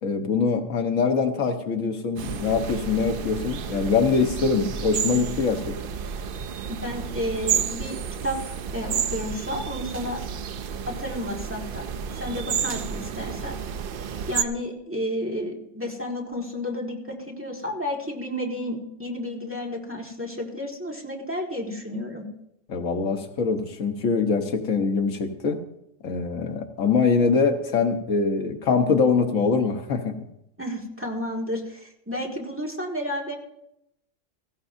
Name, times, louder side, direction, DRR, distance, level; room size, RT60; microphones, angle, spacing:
voice 1, 0.0-5.8 22.7-25.6 26.0-30.1, left 5 dB, 85° left, 6 dB, 1.5 m, -23 dB
sound 1, 2.2-14.4, right 7 dB, 55° right, 0.6 m, -31 dB
voice 2, 6.7-10.2 10.9-11.9 12.1-13.6 14.3-22.3 30.6-33.4, left 1 dB, 10° right, -1 dB, 1.8 m, -31 dB
17.0 x 15.0 x 2.7 m, 0.80 s
omnidirectional pair, 1.3 m